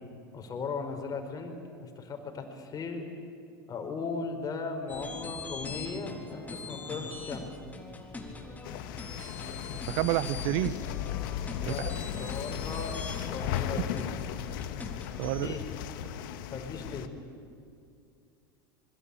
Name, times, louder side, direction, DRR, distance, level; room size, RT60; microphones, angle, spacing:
voice 1, 0.3-1.5 1.8-3.0 3.7-7.5 11.6-11.9 12.2-13.0 13.3-14.1 15.4-15.6 16.5-17.1, left 4 dB, 30° left, 4 dB, 5.3 m, -37 dB
sound 1, 4.9-15.5, left 3 dB, 15° left, 3.9 m, -42 dB
sound 2, 8.6-17.1, left 11 dB, 65° left, 1.7 m, -36 dB
voice 2, 9.9-10.8 11.6-12.0 15.2-15.6, right 16 dB, 60° right, 17 dB, 1.1 m, -30 dB
26.0 x 22.5 x 8.8 m, 2.4 s
hypercardioid pair, 90°, 12 cm